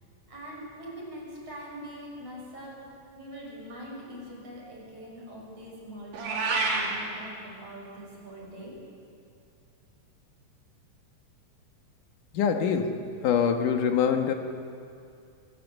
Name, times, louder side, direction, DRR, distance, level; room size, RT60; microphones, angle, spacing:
voice 1, 0.3-2.8 3.1-8.7, equal, 45° right, -3 dB, 7.3 m, -43 dB
Meow, 6.1-6.9, right 3 dB, 75° right, 4.2 m, -27 dB
voice 2, 12.3-12.9 13.2-14.3, left 7 dB, 75° left, 5 dB, 2.8 m, -24 dB
23.5 x 21.5 x 8.0 m, 2.5 s
omnidirectional pair, 3.8 m